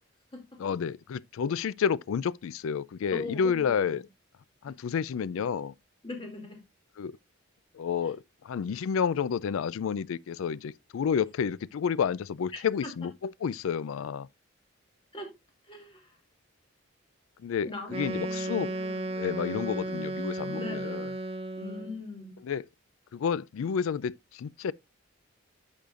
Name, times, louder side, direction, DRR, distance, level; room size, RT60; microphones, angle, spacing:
voice 1, 0.6-4.0 4.6-5.7 7.0-7.2 7.7-14.3 17.4-18.7 19.2-21.1 22.4-22.7 23.1-24.7, left 7 dB, 75° left, 0.3 m, -30 dB
voice 2, 3.1-3.8 6.0-6.6 12.5-12.9 15.1-15.3 15.7-16.1 17.6-19.2 20.5-21.0 21.6-22.3, left 3 dB, 25° left, 2.4 m, -40 dB
Wind instrument woodwind instrument, 17.9-22.0, right 2 dB, 30° right, 0.6 m, -34 dB
10.5 x 6.6 x 2.4 m
head